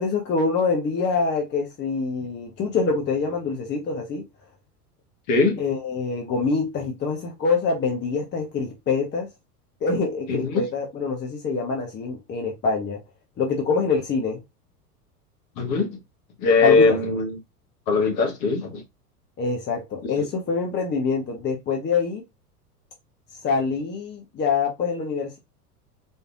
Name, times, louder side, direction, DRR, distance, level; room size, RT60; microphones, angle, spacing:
voice 1, 0.0-4.2 5.6-9.3 9.8-13.0 13.4-14.4 16.6-17.0 19.4-22.2 23.4-25.4, left 4 dB, 25° left, 1.0 m, -25 dB
voice 2, 5.3-5.6 10.3-10.6 15.6-16.0 16.4-17.4 17.9-18.8 20.2-20.3, left 4 dB, 40° left, 1.2 m, -21 dB
4.4 x 3.2 x 2.4 m
figure-of-eight pair, 80°, 46 cm